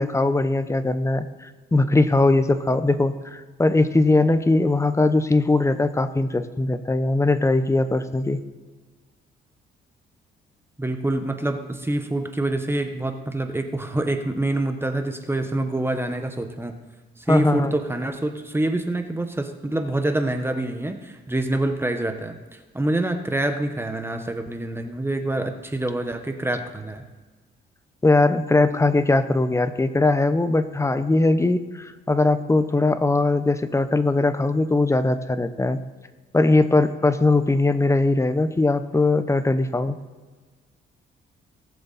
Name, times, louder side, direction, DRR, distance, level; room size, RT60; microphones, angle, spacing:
voice 1, 0.0-8.4 17.3-17.7 28.0-35.8 36.3-40.0, left 2 dB, 15° left, 11 dB, 0.8 m, -20 dB
voice 2, 10.8-16.7 17.2-22.4 22.7-27.0, right 1 dB, 10° right, 6 dB, 1.2 m, -26 dB
19.0 x 6.9 x 4.2 m, 1.3 s
cardioid pair, 90°, 20 cm